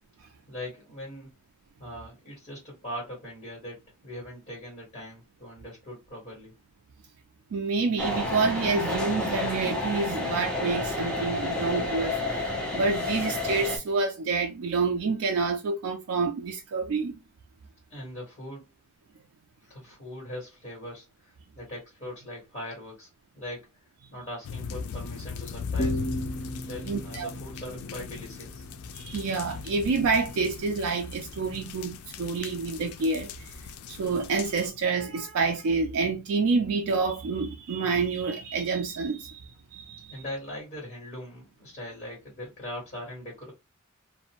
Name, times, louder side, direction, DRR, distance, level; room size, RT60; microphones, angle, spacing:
voice 1, 0.5-1.3 1.8-6.5 17.9-18.7 19.6-23.7 24.1-26.2 26.6-28.7 40.1-43.5, left 1 dB, 25° left, 1.4 m, -41 dB
voice 2, 7.5-17.2 26.8-27.3 28.9-40.2, right 4 dB, 75° right, 0.4 m, -28 dB
sound 1, 8.0-13.8, left 2 dB, 5° left, 0.6 m, -30 dB
sound 2, 24.4-34.7, left 5 dB, 80° left, 0.3 m, -38 dB
sound 3, 25.8-29.2, right 1 dB, 55° left, 0.9 m, -36 dB
2.4 x 2.1 x 2.8 m
head